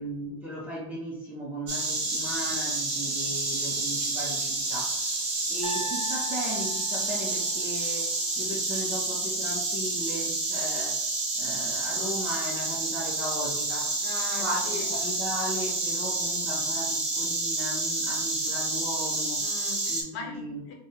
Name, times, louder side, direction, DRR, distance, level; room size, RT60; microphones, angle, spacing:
voice 1, 0.0-5.0 5.5-11.1 11.4-14.0 14.4-19.5 19.9-20.6, equal, 10° right, -5 dB, 0.5 m, -36 dB
Insect, 1.7-20.0, right 2 dB, 35° right, 0.9 m, -29 dB
sound 1, 5.6-7.8, equal, 10° left, 0.9 m, -40 dB
voice 2, 14.0-14.9 19.4-20.7, left 4 dB, 50° left, 1 dB, 0.9 m, -39 dB
3.6 x 2.1 x 3.7 m, 0.77 s
supercardioid pair, 175°, 18 cm